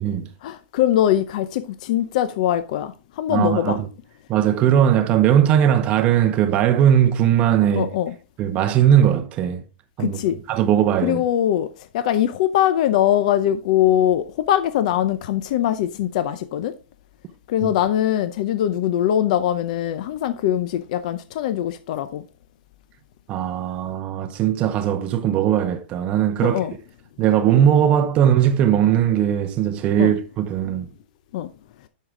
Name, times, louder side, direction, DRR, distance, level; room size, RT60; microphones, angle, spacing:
voice 1, 0.4-3.8 7.8-8.1 10.0-10.4 11.0-11.7 11.9-16.7 17.5-22.2 26.4-26.7 30.0-30.1 31.3-31.5, left 11 dB, 40° left, 0.6 m, -22 dB
voice 2, 3.3-3.9 4.3-7.9 8.4-9.6 10.0-10.2 10.5-11.2 17.6-17.7 23.3-26.6 27.2-30.9, right 10 dB, 20° right, 0.8 m, -19 dB
11.5 x 6.5 x 3.7 m
supercardioid pair, 175°, 6 cm